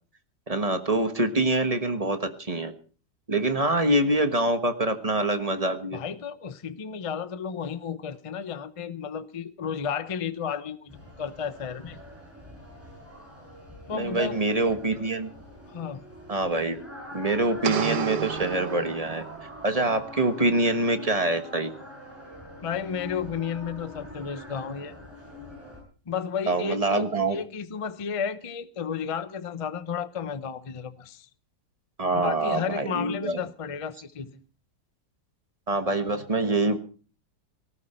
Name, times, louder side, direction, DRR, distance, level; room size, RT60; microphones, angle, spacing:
voice 1, 0.5-2.7 3.3-6.0 13.9-15.3 16.3-16.8 17.1-19.2 19.6-21.7 26.5-27.4 32.0-33.4 35.7-36.8, right 2 dB, 25° right, 1.3 m, -25 dB
voice 2, 5.9-12.0 13.9-14.4 15.7-16.0 22.6-25.0 26.1-31.3 32.1-34.4, left 7 dB, 35° left, 0.5 m, -33 dB
sound 1, 10.9-25.8, left 1 dB, 10° right, 7.8 m, -44 dB
sound 2, 17.6-19.6, right 9 dB, 70° right, 1.4 m, -32 dB
18.5 x 14.5 x 4.4 m
omnidirectional pair, 1.8 m